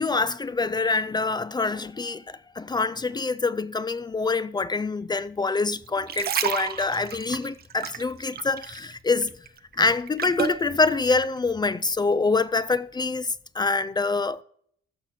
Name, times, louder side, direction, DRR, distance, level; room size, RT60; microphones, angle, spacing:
voice 1, 0.0-9.3 9.8-14.4, left 3 dB, 20° left, 0.4 m, -25 dB
sound 1, 5.9-8.9 9.2-10.6 11.2-11.4, right 8 dB, 50° right, 0.8 m, -31 dB
14.0 x 5.6 x 4.3 m
cardioid pair, 90°, 20 cm